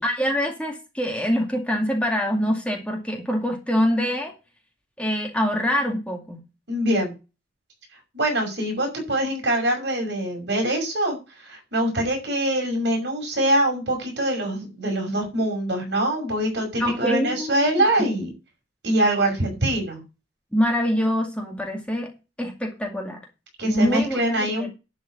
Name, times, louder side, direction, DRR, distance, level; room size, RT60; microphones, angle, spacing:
voice 1, 0.0-4.3 5.0-6.4 16.8-17.6 18.0-18.2 20.5-22.1 22.4-23.2 23.7-24.7, equal, 5° left, 1 dB, 2.2 m, -24 dB
voice 2, 6.7-7.1 8.1-11.2 11.5-18.3 18.8-20.0 23.6-24.7, right 1 dB, 65° right, 2 dB, 6.0 m, -24 dB
11.5 x 5.0 x 8.4 m, 0.29 s
head